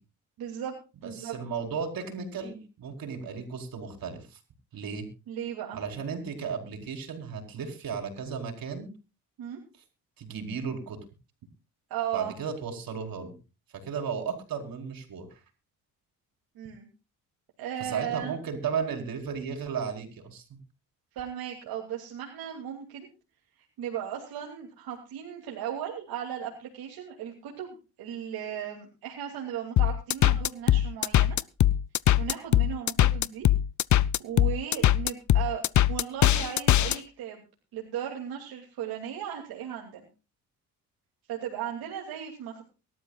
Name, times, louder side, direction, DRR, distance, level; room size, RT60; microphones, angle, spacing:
voice 1, 0.4-0.7 1.0-1.3 5.3-5.8 9.4-9.6 11.9-12.3 16.5-16.9 17.6-18.3 21.1-23.1 23.8-31.4 32.2-33.5 34.2-35.6 35.9-37.4 37.7-40.1 41.3-42.6, right 9 dB, 90° right, -1 dB, 2.9 m, -36 dB
voice 2, 1.0-4.4 4.7-5.1 5.7-8.9 10.2-11.0 12.1-13.3 13.8-15.3 17.8-20.6, right 6 dB, 70° right, 3 dB, 4.6 m, -34 dB
sound 1, 29.8-37.0, left 12 dB, 55° left, 0.6 m, -21 dB
23.5 x 12.5 x 2.4 m, 0.32 s
cardioid pair, 75°, 36 cm